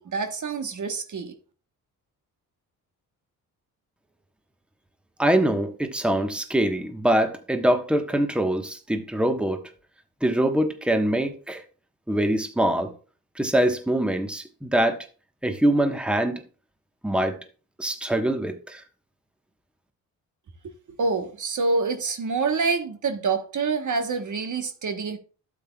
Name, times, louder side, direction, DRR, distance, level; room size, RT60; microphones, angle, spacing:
voice 1, 0.0-1.3 21.0-25.2, right 4 dB, 50° right, 1.3 m, -26 dB
voice 2, 5.2-9.6 10.2-11.6 12.1-12.9 13.4-15.1 15.4-16.4 17.0-17.4 17.8-18.8, right 1 dB, 5° right, 1.3 m, -23 dB
12.0 x 7.8 x 2.4 m
supercardioid pair, 55°, 38 cm